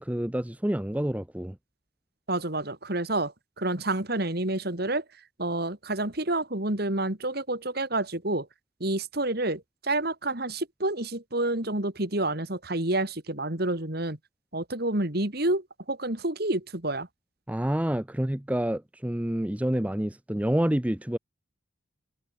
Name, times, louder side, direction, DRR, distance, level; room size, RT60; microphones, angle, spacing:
voice 1, 0.0-1.6 17.5-21.2, right 1 dB, 5° right, 0.5 m, -28 dB
voice 2, 2.3-5.0 5.4-8.5 8.8-14.2 14.5-17.1, right 2 dB, 50° right, 2.7 m, -29 dB
head